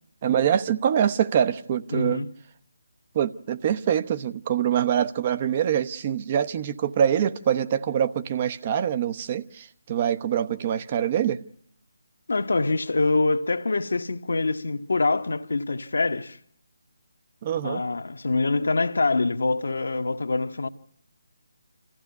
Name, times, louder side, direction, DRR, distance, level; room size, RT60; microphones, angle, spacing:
voice 1, 0.2-2.2 3.1-11.4 17.4-17.8, right 9 dB, 35° right, 0.9 m, -24 dB
voice 2, 1.9-2.3 12.3-16.4 17.6-20.7, left 3 dB, 65° left, 1.2 m, -25 dB
26.5 x 15.0 x 9.6 m
figure-of-eight pair, 150°, 0 cm